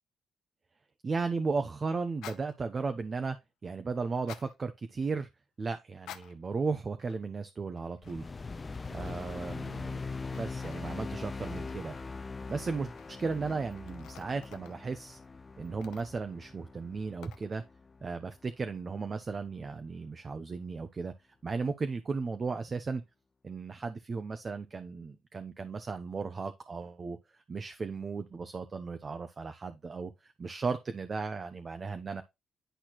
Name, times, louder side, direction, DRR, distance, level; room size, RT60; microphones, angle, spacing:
voice 1, 1.0-3.4 3.6-5.3 5.6-8.3 8.9-10.0 10.3-11.9 12.5-12.9 13.2-15.2 15.6-17.6 18.0-21.1 21.4-23.0 23.4-32.2, right 4 dB, 35° right, 0.7 m, -35 dB
sound 1, 2.1-2.5 4.1-4.5 5.9-6.5 7.0-7.5 7.8-14.8 15.6-16.3 17.2-17.5, left 11 dB, 90° left, 0.7 m, -53 dB
sound 2, 8.0-18.5, left 4 dB, 25° left, 0.5 m, -42 dB
10.0 x 4.2 x 3.0 m
cardioid pair, 90°, 0 cm